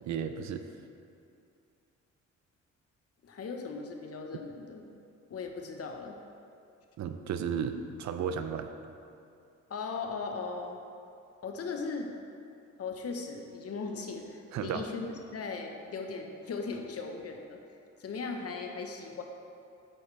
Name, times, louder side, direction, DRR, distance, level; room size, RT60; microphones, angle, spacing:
voice 1, 0.0-0.6 7.0-8.7 14.5-14.9, right 7 dB, 65° right, 8 dB, 0.6 m, -34 dB
voice 2, 3.2-4.8 5.3-6.2 9.7-10.8 11.4-12.1 12.8-15.1 15.3-17.6 18.0-19.2, left 4 dB, 50° left, 3 dB, 1.1 m, -38 dB
8.9 x 8.3 x 3.3 m, 2.6 s
cardioid pair, 90°, 30 cm